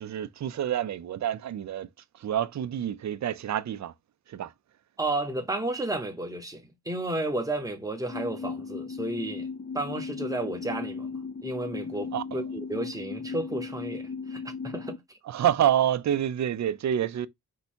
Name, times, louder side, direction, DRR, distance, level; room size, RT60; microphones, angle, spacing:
voice 1, 0.0-1.9 2.2-3.9 4.3-4.5 12.1-12.5 15.2-17.3, right 10 dB, 50° right, 0.4 m, -28 dB
voice 2, 5.0-9.5 9.7-11.1 11.4-15.0, right 2 dB, 10° right, 0.8 m, -32 dB
sound 1, 8.1-15.0, left 5 dB, 30° left, 0.4 m, -36 dB
4.6 x 2.7 x 4.2 m
wide cardioid pair, 125°, 38 cm